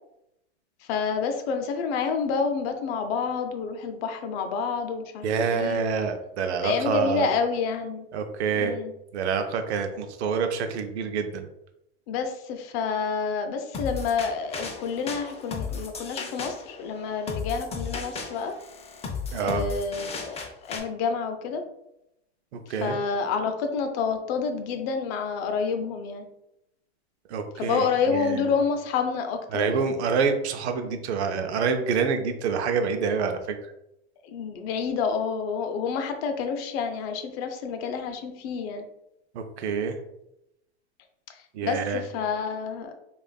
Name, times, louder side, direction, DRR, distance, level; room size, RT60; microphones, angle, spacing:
voice 1, 0.8-5.9 6.6-8.1 8.5-8.9 12.1-18.5 19.3-21.6 22.7-26.2 27.6-29.9 34.2-38.8 41.3-43.0, left 5 dB, 65° left, 6 dB, 0.7 m, -29 dB
voice 2, 5.2-7.3 8.1-8.8 9.1-11.5 19.3-19.7 22.7-23.0 27.3-28.5 29.5-33.6 39.3-40.0 41.5-42.0, right 5 dB, 85° right, 6 dB, 0.6 m, -27 dB
sound 1, 13.7-20.8, left 5 dB, 20° left, 0.5 m, -35 dB
4.9 x 2.5 x 2.3 m, 0.84 s
hypercardioid pair, 105°, 33 cm